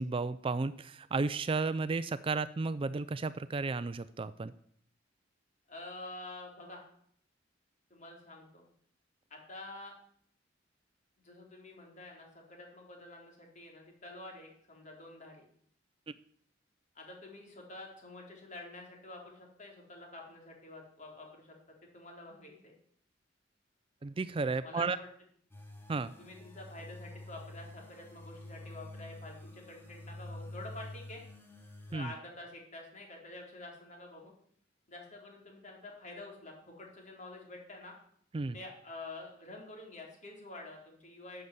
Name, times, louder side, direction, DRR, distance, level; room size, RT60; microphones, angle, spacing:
voice 1, 0.0-4.5 24.0-25.0 25.9-26.1 31.9-32.1 38.3-38.6, right 3 dB, 30° right, 14 dB, 0.4 m, -33 dB
voice 2, 5.7-6.9 7.9-8.6 9.3-9.9 11.2-15.5 16.9-21.5 21.9-22.7 24.6-25.1 26.2-31.2 31.9-34.3 34.9-37.9 38.5-41.4, left 2 dB, 40° left, 0 dB, 4.0 m, -48 dB
sound 1, 25.5-32.0, left 1 dB, 10° left, 2.5 m, -48 dB
12.5 x 6.8 x 7.9 m, 0.64 s
head